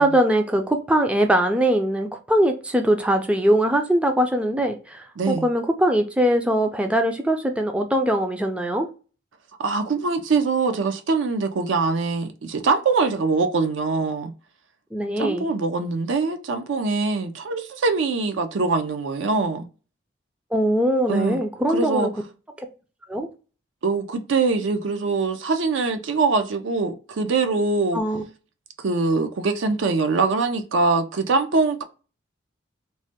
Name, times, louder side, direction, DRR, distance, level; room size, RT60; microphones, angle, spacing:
voice 1, 0.0-8.9 14.9-15.5 20.5-22.1 23.1-23.3 27.9-28.2, right 1 dB, 5° right, 0.3 m, -21 dB
voice 2, 5.2-5.5 9.6-14.3 15.2-19.7 21.1-21.4 21.7-22.1 23.8-28.0 28.8-31.8, right 4 dB, 80° right, 0.5 m, -23 dB
3.1 x 2.1 x 2.7 m
head